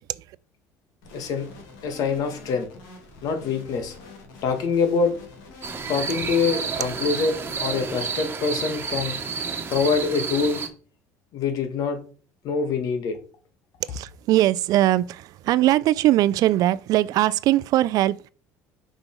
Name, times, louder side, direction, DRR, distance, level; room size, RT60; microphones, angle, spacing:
sound 1, 1.0-8.3, left 3 dB, 85° left, 2.4 m, -46 dB
voice 1, 1.1-1.5 1.8-2.7 3.2-3.9 4.4-5.1 5.9-7.3 7.6-9.2 9.7-10.6 11.3-12.0 12.4-13.2, left 5 dB, 65° left, 1.7 m, -24 dB
sound 2, 5.6-10.7, right 5 dB, 35° right, 1.3 m, -30 dB
voice 2, 13.8-18.3, right 14 dB, 65° right, 0.4 m, -21 dB
5.5 x 5.3 x 4.5 m
supercardioid pair, 100°, 7 cm